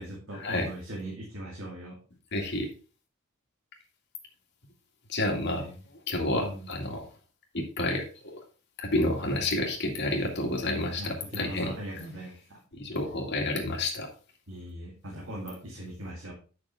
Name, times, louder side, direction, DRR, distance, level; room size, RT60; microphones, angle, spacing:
voice 1, 0.0-2.0 5.5-5.8 6.3-6.7 11.0-12.6 14.5-16.3, right 1 dB, 65° right, -4 dB, 2.5 m, -40 dB
voice 2, 2.3-2.7 5.1-5.6 6.1-7.0 7.5-8.4 8.8-11.7 12.7-14.1, left 1 dB, 55° left, 2 dB, 2.1 m, -29 dB
8.6 x 6.1 x 3.5 m, 0.36 s
head